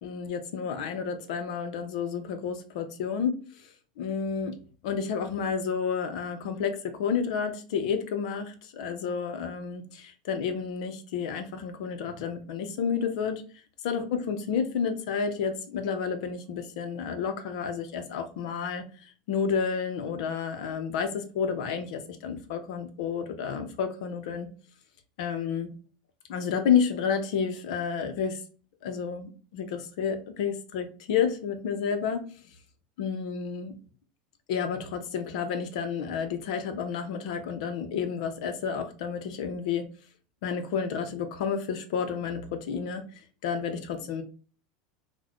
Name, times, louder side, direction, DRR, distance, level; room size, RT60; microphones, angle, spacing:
voice 1, 0.0-4.6 4.8-13.4 13.8-24.5 25.2-25.7 26.3-28.4 28.8-32.2 33.0-33.8 34.5-39.8 40.4-43.0 43.4-44.2, left 6 dB, 75° left, 8 dB, 0.7 m, -30 dB
3.9 x 2.2 x 2.9 m, 0.39 s
supercardioid pair, 110°, 4 cm